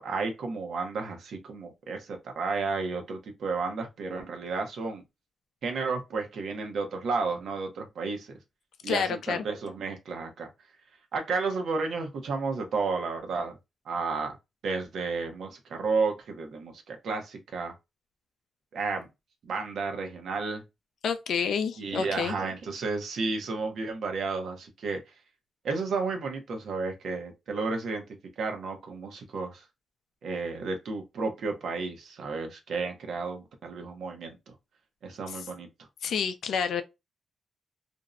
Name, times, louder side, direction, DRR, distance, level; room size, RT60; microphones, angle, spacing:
voice 1, 0.0-5.0 5.6-8.4 8.8-10.5 11.1-13.6 13.9-14.4 14.6-17.7 18.7-19.1 19.4-20.6 21.8-25.0 25.6-28.0 28.4-29.6 30.2-34.5 35.0-35.7, right 4 dB, 65° right, 0.6 m, -32 dB
voice 2, 8.8-9.4 21.0-22.3 36.0-36.8, left 7 dB, 75° left, 0.3 m, -29 dB
2.5 x 2.0 x 2.4 m
wide cardioid pair, 175°, 0 cm